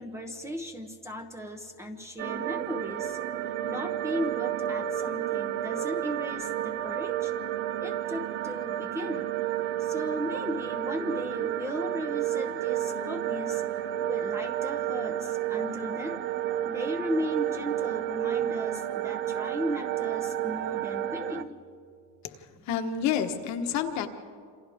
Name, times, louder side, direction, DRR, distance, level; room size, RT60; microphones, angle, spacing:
voice 1, 0.0-7.3 7.8-9.3 9.8-16.2 16.6-21.6 22.6-22.7, equal, 5° right, 4 dB, 0.9 m, -36 dB
sound 1, 2.2-21.4, right 11 dB, 35° right, 0.5 m, -31 dB
voice 2, 22.7-24.1, left 8 dB, 45° left, 6 dB, 1.3 m, -28 dB
27.5 x 27.5 x 3.6 m, 2.2 s
cardioid pair, 165°, 38 cm